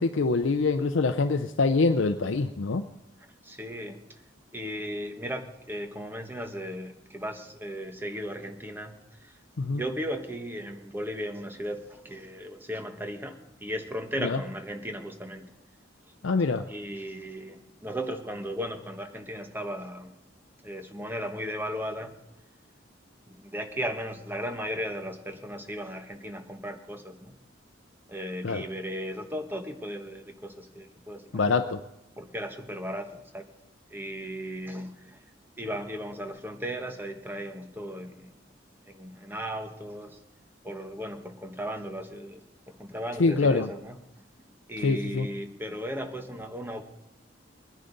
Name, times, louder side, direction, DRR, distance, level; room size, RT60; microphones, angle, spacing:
voice 1, 0.0-2.8 9.6-9.8 14.2-14.4 16.2-16.7 28.4-28.6 31.3-31.8 43.2-43.7 44.8-45.3, left 3 dB, 75° left, 7 dB, 0.6 m, -25 dB
voice 2, 3.4-4.2 4.5-9.3 9.7-15.5 16.7-20.1 20.6-22.2 23.3-27.3 28.1-31.6 32.2-33.5 33.9-35.2 35.6-38.3 38.9-40.2 40.6-42.4 42.7-44.0 44.7-46.8, equal, 10° right, 5 dB, 1.2 m, -36 dB
22.0 x 10.0 x 4.0 m, 0.90 s
head